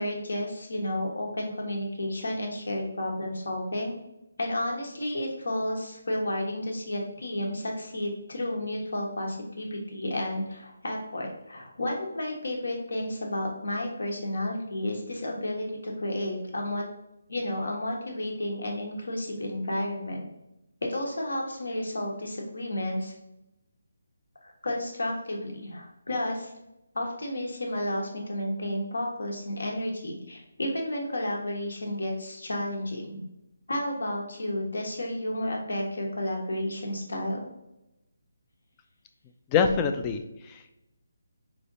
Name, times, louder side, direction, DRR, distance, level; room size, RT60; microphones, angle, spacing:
voice 1, 0.0-3.9 4.4-16.8 17.3-20.2 20.8-23.1 24.4-26.5 26.9-33.2 33.7-37.4, left 1 dB, 75° left, 0 dB, 1.1 m, -32 dB
voice 2, 39.5-40.7, left 6 dB, 20° left, 6 dB, 0.3 m, -26 dB
4.9 x 3.1 x 2.6 m, 0.90 s
figure-of-eight pair, 155°, 0 cm